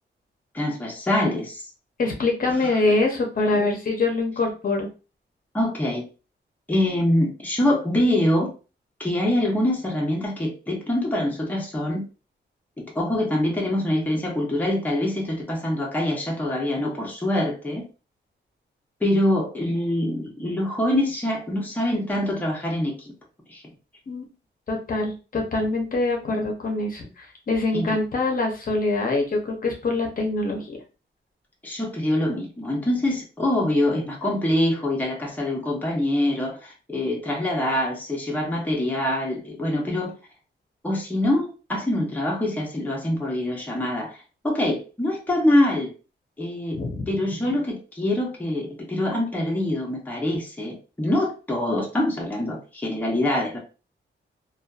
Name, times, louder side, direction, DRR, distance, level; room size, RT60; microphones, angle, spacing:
voice 1, 0.5-1.6 2.6-2.8 5.5-6.0 6.7-8.5 9.0-12.0 12.8-17.8 19.0-22.9 23.5-23.6 27.7-28.0 31.6-40.1 40.8-44.1 44.4-45.9 46.4-46.8 47.1-53.6, left 1 dB, 10° left, -1 dB, 0.7 m, -24 dB
voice 2, 2.0-4.9 24.1-24.2 24.7-30.7 46.7-47.1, left 2 dB, 50° left, 1 dB, 0.6 m, -24 dB
2.5 x 2.2 x 2.3 m, 0.33 s
wide cardioid pair, 120°, 19 cm